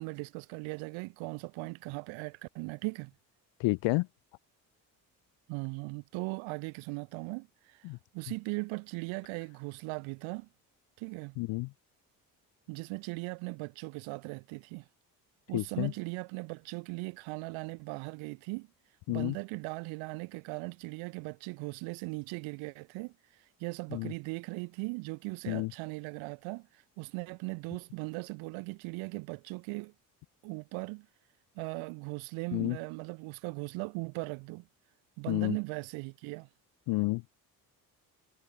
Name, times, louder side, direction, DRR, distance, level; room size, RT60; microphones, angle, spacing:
voice 1, 0.0-3.1 5.5-7.9 8.1-10.5 11.0-11.4 12.7-14.8 15.5-18.7 19.1-23.1 23.6-29.9 30.4-31.1 31.6-34.6 35.2-36.5, right 28 dB, 70° right, 0.8 m, -39 dB
voice 2, 3.6-4.1 7.8-8.0 11.4-11.7 15.5-15.9 19.1-19.4 23.9-24.1 25.5-25.7 32.5-32.8 35.3-35.6 36.9-37.2, left 23 dB, 65° left, 0.7 m, -30 dB
hypercardioid pair, 45°, 48 cm